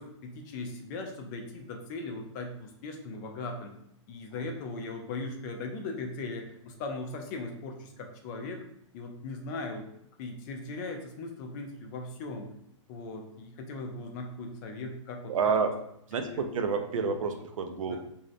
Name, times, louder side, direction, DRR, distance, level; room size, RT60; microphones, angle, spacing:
voice 1, 0.0-3.7 4.1-8.6 8.9-9.9 10.2-12.5 12.9-15.4 16.3-16.5 17.8-18.0, left 3 dB, 40° left, 3 dB, 0.4 m, -39 dB
voice 2, 15.3-15.8 16.1-18.0, right 5 dB, 85° right, 6 dB, 0.4 m, -29 dB
2.6 x 2.0 x 2.5 m, 0.74 s
hypercardioid pair, 140°, 16 cm